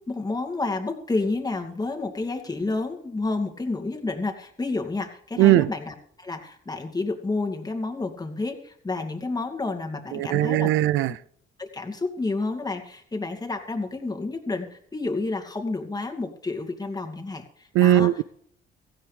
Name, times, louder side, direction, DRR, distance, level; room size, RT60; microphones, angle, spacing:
voice 1, 0.1-10.8 11.1-11.2 11.6-18.1, left 3 dB, 20° left, 2.4 m, -30 dB
voice 2, 5.4-5.7 10.1-11.1 17.7-18.2, right 14 dB, 90° right, 0.5 m, -19 dB
17.0 x 15.5 x 3.4 m
cardioid pair, 90°, 20 cm